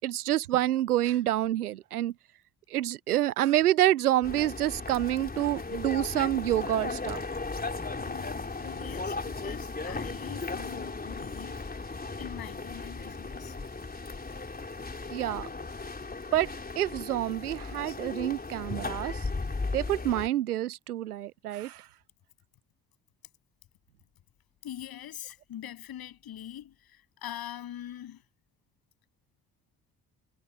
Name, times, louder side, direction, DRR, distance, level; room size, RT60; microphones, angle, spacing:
voice 1, 0.0-2.1 2.7-7.2 15.1-15.5 16.3-16.5 16.8-19.2 19.7-21.8, right 13 dB, 80° right, 0.6 m, -27 dB
sound 1, 4.2-20.3, left 3 dB, 20° left, 4.0 m, -36 dB
voice 2, 8.0-11.7 12.2-13.6 24.6-28.2, left 11 dB, 55° left, 7.0 m, -43 dB
figure-of-eight pair, 45°, 44 cm